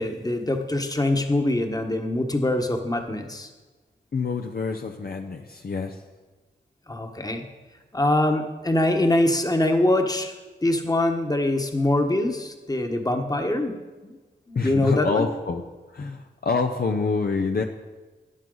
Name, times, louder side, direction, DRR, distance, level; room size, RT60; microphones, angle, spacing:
voice 1, 0.0-3.5 6.9-7.4 7.9-10.3 10.6-14.2 14.5-15.3, left 1 dB, 20° left, 4 dB, 1.3 m, -23 dB
voice 2, 4.1-6.0 14.5-15.6 15.9-17.6, left 4 dB, 50° left, 4 dB, 0.7 m, -26 dB
12.5 x 9.5 x 4.0 m, 1.3 s
cardioid pair, 55°, 20 cm